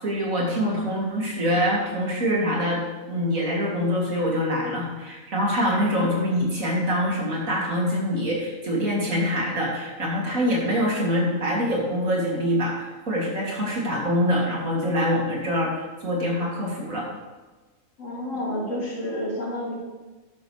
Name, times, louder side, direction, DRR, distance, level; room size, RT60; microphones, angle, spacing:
voice 1, 0.0-2.8 3.1-17.1, equal, 75° right, -4 dB, 3.3 m, -25 dB
voice 2, 18.0-19.7, left 1 dB, 65° left, -3 dB, 3.1 m, -29 dB
13.0 x 10.0 x 3.4 m, 1.2 s
omnidirectional pair, 1.4 m